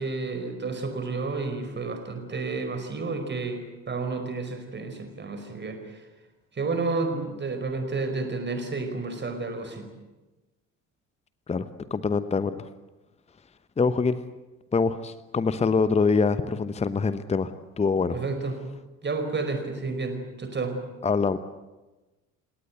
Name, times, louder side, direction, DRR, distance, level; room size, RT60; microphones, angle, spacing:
voice 1, 0.0-3.6 3.9-6.0 6.5-9.9 18.1-18.6 19.0-20.8, right 3 dB, 25° right, 6 dB, 5.0 m, -31 dB
voice 2, 11.5-12.7 13.8-14.2 14.7-17.5 17.8-18.2 21.0-21.4, left 4 dB, 15° left, 14 dB, 1.0 m, -24 dB
29.0 x 18.0 x 8.2 m, 1.1 s
figure-of-eight pair, 55°, 39 cm